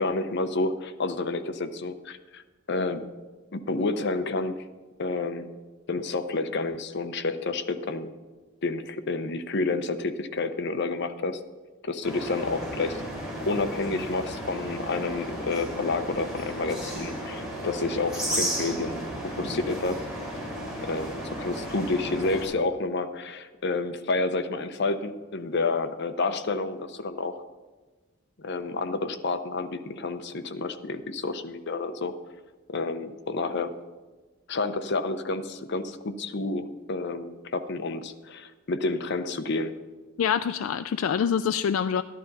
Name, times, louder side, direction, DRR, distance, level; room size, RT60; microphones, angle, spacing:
voice 1, 0.0-2.4 2.7-3.1 3.5-4.6 5.0-5.5 5.9-8.1 8.6-11.4 11.8-13.0 13.5-20.0 20.8-27.3 28.4-32.1 32.7-33.7 34.5-39.7, left 3 dB, 55° left, 9 dB, 0.7 m, -29 dB
sound 1, 12.0-22.4, equal, 5° right, 3.8 m, -34 dB
voice 2, 40.2-42.0, left 7 dB, 75° left, 10 dB, 0.3 m, -25 dB
13.0 x 11.0 x 4.1 m, 1.2 s
head